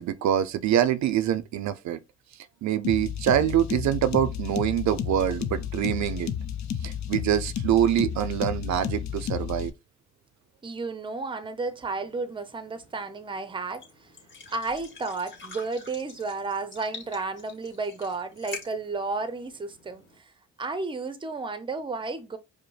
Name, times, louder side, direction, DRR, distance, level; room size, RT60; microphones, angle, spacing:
voice 1, 0.0-2.0 2.6-6.3 6.8-9.7, right 11 dB, 65° right, 0.5 m, -25 dB
sound 1, 2.8-9.7, left 8 dB, 65° left, 0.6 m, -32 dB
voice 2, 10.6-14.1 14.5-20.3 20.6-22.4, right 3 dB, 15° right, 0.6 m, -32 dB
sound 2, 11.7-20.2, left 4 dB, 40° left, 2.1 m, -47 dB
4.9 x 2.1 x 3.2 m
cardioid pair, 90°, 30 cm